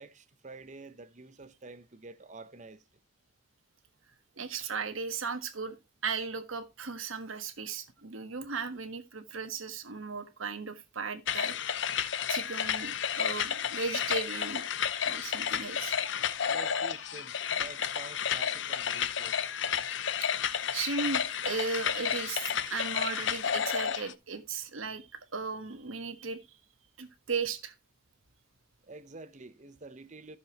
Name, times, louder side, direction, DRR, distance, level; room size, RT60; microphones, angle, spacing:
voice 1, 0.0-2.8 16.4-19.4 28.8-30.4, right 3 dB, 35° right, 0.8 m, -48 dB
voice 2, 4.4-5.8 6.0-11.5 11.8-12.0 12.3-14.7 15.0-16.0 20.2-20.3 20.7-25.1 25.3-26.4 27.0-27.7, right 5 dB, 85° right, 1.4 m, -36 dB
sound 1, 11.3-24.1, left 8 dB, 65° left, 0.7 m, -31 dB
14.5 x 7.0 x 3.0 m
head